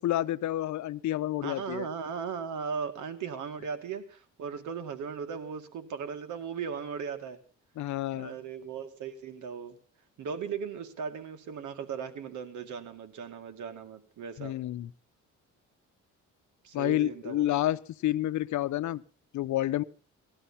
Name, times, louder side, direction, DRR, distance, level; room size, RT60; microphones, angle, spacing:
voice 1, 0.0-1.9 7.8-8.3 14.4-14.9 16.7-19.0 19.3-19.8, left 14 dB, 70° left, 15 dB, 0.8 m, -29 dB
voice 2, 1.4-7.4 8.1-9.8 10.2-14.5 16.6-17.6, right 6 dB, 80° right, 8 dB, 2.3 m, -37 dB
18.5 x 12.5 x 5.8 m, 0.40 s
cardioid pair, 90°, 30 cm